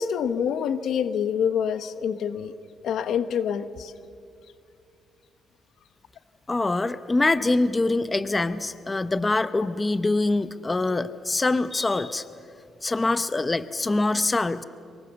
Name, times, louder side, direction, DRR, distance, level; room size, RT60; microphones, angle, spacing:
voice 1, 0.0-2.5 2.8-3.9 6.6-6.8, left 7 dB, 70° left, 12 dB, 1.0 m, -26 dB
voice 2, 6.5-12.2 12.8-14.6, left 2 dB, 20° left, 13 dB, 0.8 m, -24 dB
24.5 x 23.0 x 7.0 m, 2.4 s
cardioid pair, 90°, 0 cm